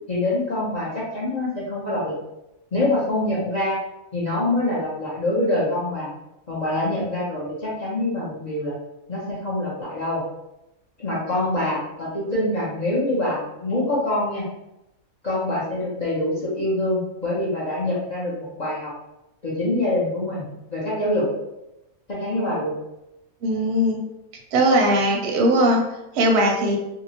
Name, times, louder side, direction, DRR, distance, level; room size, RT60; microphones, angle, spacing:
voice 1, 0.1-2.2 2.7-3.8 4.1-6.1 6.5-8.7 9.1-10.2 11.0-14.4 15.2-18.9 19.4-21.2 22.1-22.7, left 1 dB, 55° left, -8 dB, 0.5 m, -25 dB
voice 2, 23.4-24.0 24.5-25.8 26.1-26.8, right 1 dB, 65° right, 0 dB, 0.7 m, -19 dB
2.7 x 2.0 x 2.7 m, 0.91 s
omnidirectional pair, 1.5 m